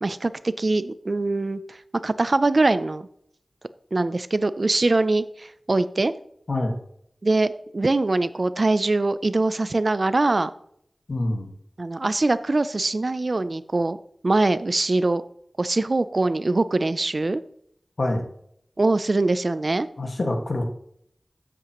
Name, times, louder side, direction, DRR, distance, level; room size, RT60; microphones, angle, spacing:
voice 1, 0.0-3.1 3.9-6.1 7.2-10.5 11.8-14.0 14.2-15.2 15.6-17.4 18.8-19.9, right 2 dB, 60° right, 14 dB, 0.6 m, -23 dB
voice 2, 11.1-11.5 18.0-18.3 20.0-20.6, left 1 dB, 75° left, 2 dB, 1.9 m, -25 dB
13.0 x 8.5 x 3.1 m, 0.69 s
wide cardioid pair, 45°, 0 cm